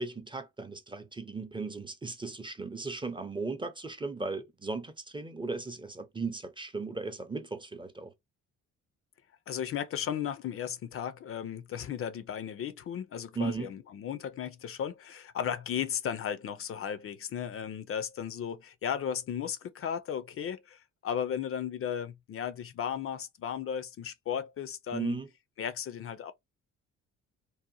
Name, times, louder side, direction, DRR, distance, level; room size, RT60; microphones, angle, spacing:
voice 1, 0.0-8.1 13.4-13.7 24.9-25.3, right 4 dB, 15° right, 0.5 m, -36 dB
voice 2, 9.5-25.2 25.6-26.3, left 8 dB, 50° left, 0.4 m, -35 dB
2.7 x 2.1 x 2.5 m
cardioid pair, 90°, 30 cm